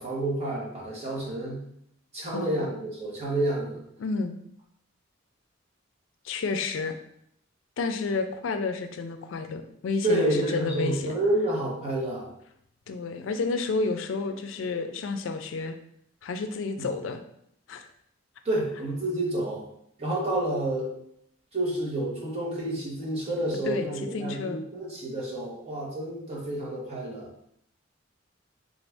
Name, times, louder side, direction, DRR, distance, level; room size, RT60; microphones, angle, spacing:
voice 1, 0.0-1.6 2.1-3.8 10.0-12.3 16.8-16.9 18.4-19.6 20.0-20.9 21.5-27.3, right 1 dB, 35° right, -5 dB, 1.1 m, -29 dB
voice 2, 2.3-2.7 4.0-4.4 6.2-7.0 7.8-11.1 12.9-15.8 16.2-17.2 17.7-17.9 23.7-24.6, left 4 dB, 75° left, 7 dB, 0.4 m, -30 dB
3.7 x 2.6 x 3.4 m, 0.72 s
head